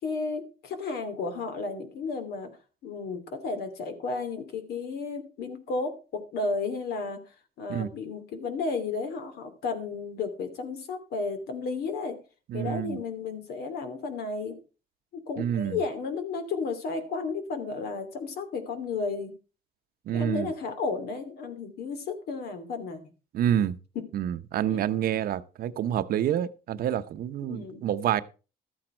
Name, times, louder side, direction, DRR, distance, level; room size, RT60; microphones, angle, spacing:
voice 1, 0.0-2.6 2.8-7.2 7.6-12.2 12.5-14.6 15.1-19.3 20.1-23.1 23.9-24.0 24.7-24.8 27.5-27.9, left 4 dB, 70° left, 2.8 m, -33 dB
voice 2, 12.5-13.0 15.4-15.8 20.1-20.5 23.3-23.8 24.1-28.2, right 10 dB, 60° right, 0.9 m, -28 dB
13.0 x 8.9 x 4.5 m
cardioid pair, 110°, 17 cm